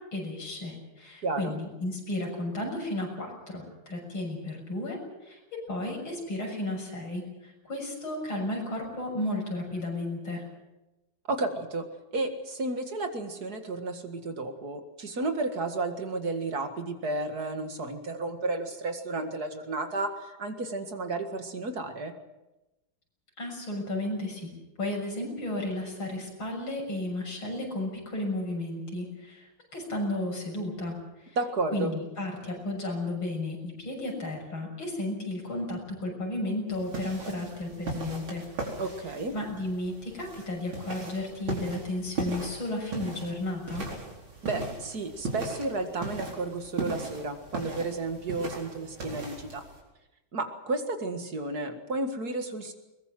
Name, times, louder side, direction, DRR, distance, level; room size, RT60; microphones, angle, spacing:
voice 1, 0.0-10.4 23.4-24.5 24.8-31.4 31.7-38.4 39.3-43.9, left 1 dB, 90° left, 1 dB, 7.5 m, -33 dB
voice 2, 1.2-1.5 11.3-11.9 12.1-22.1 31.4-31.9 38.8-39.3 44.4-49.6 50.3-52.7, right 2 dB, 50° right, 6 dB, 2.4 m, -32 dB
sound 1, 36.7-49.8, right 2 dB, 85° right, 5.2 m, -38 dB
22.5 x 20.5 x 7.6 m, 1.0 s
omnidirectional pair, 2.2 m